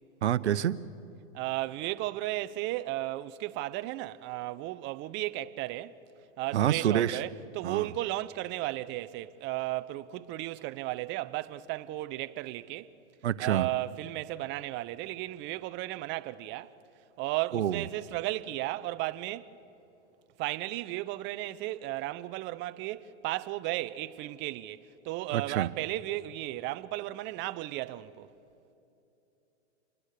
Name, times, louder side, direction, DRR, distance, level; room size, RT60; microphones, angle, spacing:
voice 1, 0.2-0.7 6.5-7.2 7.6-7.9 13.2-13.7 17.5-17.8 25.3-25.7, right 10 dB, 90° right, 0.9 m, -27 dB
voice 2, 1.3-5.9 6.4-12.9 13.4-16.7 17.2-19.5 20.4-28.3, right 16 dB, 35° right, 0.8 m, -34 dB
28.0 x 22.0 x 6.7 m
hypercardioid pair, 130°, 33 cm